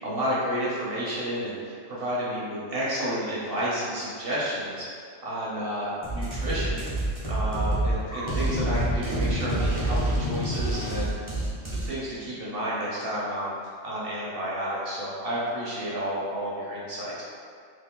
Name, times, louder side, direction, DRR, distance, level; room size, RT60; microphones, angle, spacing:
voice 1, 0.0-4.8 5.2-6.8 7.3-11.2 11.8-13.5 13.8-17.2, equal, 55° right, -7 dB, 0.7 m, -31 dB
sound 1, 6.0-11.9, right 1 dB, 20° right, 0.6 m, -27 dB
3.1 x 2.5 x 3.6 m, 2.2 s
omnidirectional pair, 1.4 m